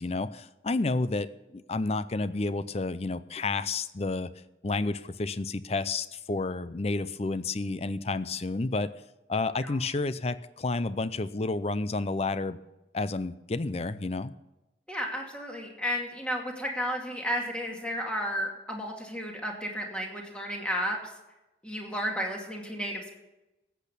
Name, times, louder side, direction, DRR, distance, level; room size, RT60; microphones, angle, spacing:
voice 1, 0.0-4.3 4.6-8.9 9.3-12.6 12.9-14.3, left 3 dB, 35° left, 15 dB, 0.5 m, -30 dB
voice 2, 14.9-21.0 21.6-23.1, equal, 5° left, 0 dB, 2.3 m, -33 dB
14.0 x 8.5 x 6.9 m, 1.0 s
head